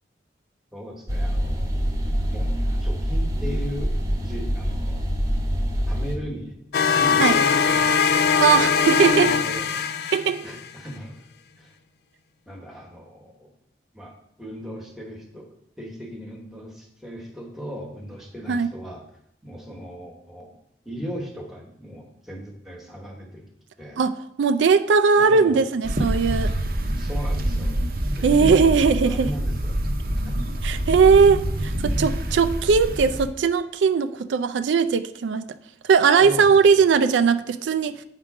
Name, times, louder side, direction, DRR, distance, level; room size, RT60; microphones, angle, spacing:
voice 1, 0.7-1.8 2.3-2.5 2.8-5.1 5.9-6.6 6.9-7.9 8.3-8.6 9.0-9.8 10.4-11.3 11.6-11.8 12.5-13.5 13.9-15.5 15.8-19.0 19.4-20.5 20.8-23.4 23.8-24.0 25.2-25.7 27.0-27.8 28.1-29.8 30.1-30.4 36.2-36.8, equal, ahead, 0 dB, 1.1 m, -37 dB
sound 1, 1.1-6.2, equal, 20° right, 0.8 m, -25 dB
sound 2, 6.7-10.7, left 6 dB, 60° left, 0.3 m, -21 dB
voice 2, 8.4-9.4 10.1-10.4 18.5-18.7 24.0-26.5 28.2-29.3 30.6-35.4 35.8-38.0, right 5 dB, 85° right, 10 dB, 0.4 m, -19 dB
sound 3, 25.8-33.3, right 1 dB, 55° right, 0.7 m, -26 dB
9.1 x 3.7 x 4.8 m, 0.75 s
head